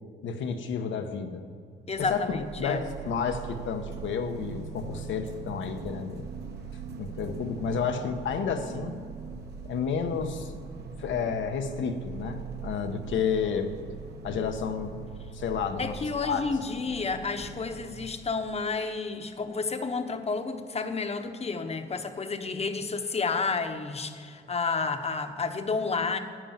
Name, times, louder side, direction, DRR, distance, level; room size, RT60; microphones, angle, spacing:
voice 1, 0.2-1.4 2.0-6.3 7.0-9.0 9.6-10.5 11.0-13.7 14.2-14.9 15.3-16.4, left 6 dB, 75° left, 6 dB, 1.2 m, -31 dB
voice 2, 1.9-2.8 15.8-26.2, left 4 dB, 30° left, 7 dB, 1.1 m, -31 dB
sound 1, 2.0-18.6, right 5 dB, 55° right, 1.4 m, -41 dB
11.0 x 9.1 x 7.3 m, 2.3 s
cardioid pair, 90°, 20 cm